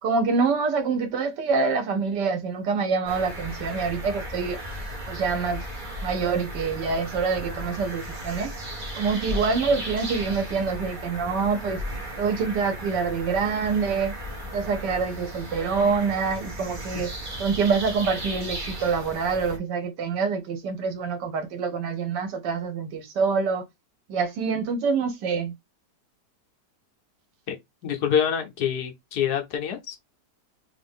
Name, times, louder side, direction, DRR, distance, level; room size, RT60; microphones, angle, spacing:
voice 1, 0.0-4.6 5.1-5.6 6.0-8.5 8.9-11.8 12.2-14.1 14.5-17.1 17.4-23.6 24.1-25.5, right 5 dB, 80° right, 1.5 m, -26 dB
sound 1, 3.1-19.6, equal, 35° right, 0.9 m, -35 dB
voice 2, 27.5-30.0, left 8 dB, 70° left, 1.3 m, -26 dB
3.4 x 2.5 x 3.5 m
omnidirectional pair, 1.8 m